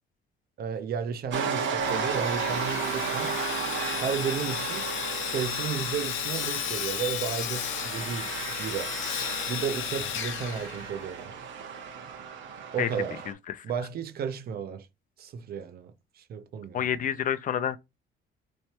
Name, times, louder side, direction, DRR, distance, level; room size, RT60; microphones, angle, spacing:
voice 1, 0.6-3.4 4.0-4.9 5.2-8.3 8.6-8.9 9.5-11.4 12.7-13.2 13.6-14.9 15.2-16.8, right 7 dB, 50° right, 0.5 m, -33 dB
sound 1, 1.3-13.3, right 6 dB, 70° right, 1.0 m, -34 dB
Sawing, 1.8-11.3, left 9 dB, 90° left, 0.8 m, -34 dB
voice 2, 16.7-17.8, left 9 dB, 45° left, 0.4 m, -28 dB
4.3 x 3.2 x 2.8 m
cardioid pair, 135°, 20 cm